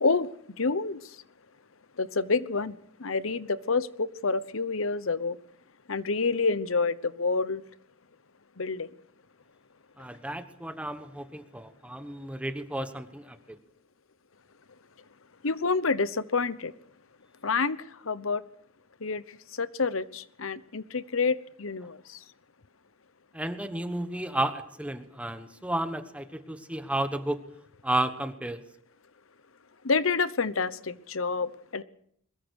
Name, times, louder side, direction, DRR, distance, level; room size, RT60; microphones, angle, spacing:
voice 1, 0.6-1.0 2.0-5.4 5.9-7.6 8.6-8.9 15.4-16.7 17.4-17.8 18.1-18.4 19.0-19.2 19.6-22.2 29.8-31.8, left 4 dB, 75° left, 15 dB, 1.0 m, -28 dB
voice 2, 10.0-13.4 23.3-27.4 27.8-28.6, right 1 dB, 5° right, 9 dB, 1.2 m, -32 dB
22.5 x 21.0 x 6.4 m, 0.67 s
head